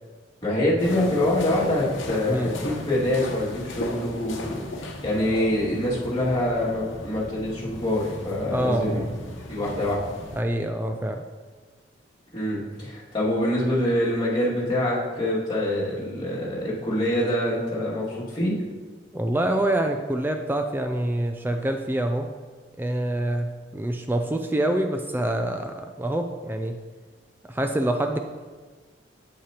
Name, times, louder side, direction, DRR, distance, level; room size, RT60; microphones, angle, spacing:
voice 1, 0.4-9.1 9.5-10.0 12.3-18.6, left 1 dB, 25° left, -8 dB, 2.3 m, -25 dB
sound 1, 0.8-10.4, left 1 dB, 90° left, 0.9 m, -37 dB
voice 2, 8.5-9.2 10.4-11.2 19.1-22.3 22.8-26.8 27.5-28.2, right 1 dB, 10° right, 5 dB, 0.3 m, -26 dB
8.3 x 7.5 x 2.9 m, 1.4 s
head